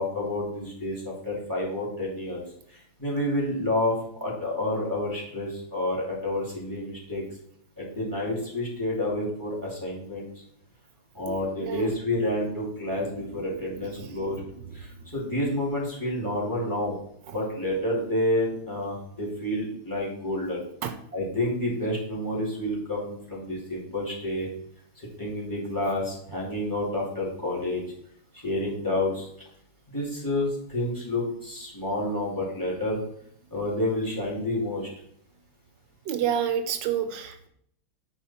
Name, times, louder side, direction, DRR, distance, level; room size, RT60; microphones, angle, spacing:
voice 1, 0.0-2.4 3.0-7.2 7.8-10.3 11.1-14.4 14.7-17.0 17.3-20.6 21.1-24.5 25.0-27.8 28.4-29.3 29.9-33.0 33.5-34.9, left 1 dB, 10° left, -3 dB, 2.6 m, -29 dB
voice 2, 11.3-11.9 13.3-13.4 13.7-14.4 17.3-17.4 20.8-20.9 36.1-37.5, right 8 dB, 70° right, 9 dB, 1.2 m, -30 dB
8.9 x 5.1 x 4.4 m, 0.68 s
omnidirectional pair, 2.3 m